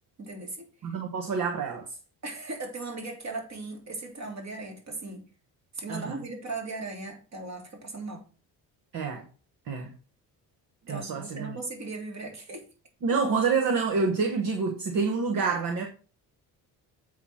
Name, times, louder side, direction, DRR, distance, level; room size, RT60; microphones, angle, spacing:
voice 1, 0.2-0.7 2.2-5.2 5.7-8.2 10.8-12.7, right 3 dB, 45° right, 3.1 m, -38 dB
voice 2, 0.8-1.9 5.9-6.2 8.9-9.3 9.7-9.9 10.9-11.6 13.0-15.9, right 4 dB, 60° right, 1.5 m, -27 dB
7.9 x 4.8 x 5.7 m
cardioid pair, 120°, 37 cm